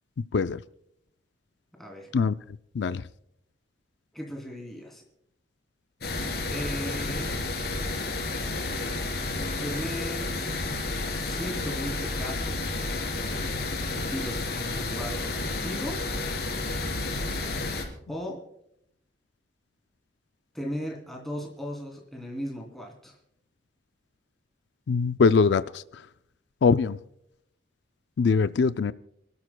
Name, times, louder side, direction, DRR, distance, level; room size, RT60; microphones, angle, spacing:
voice 1, 1.8-2.1 4.1-5.0 6.5-7.3 9.6-10.3 11.2-12.7 13.9-16.0 18.1-18.4 20.5-23.1, equal, ahead, 3.0 m, -36 dB
sound 1, 6.0-17.8, left 2 dB, 55° left, 3.6 m, -31 dB
voice 2, 24.9-25.8 26.6-27.0 28.2-28.9, left 5 dB, 75° left, 0.4 m, -22 dB
29.5 x 12.5 x 2.2 m
head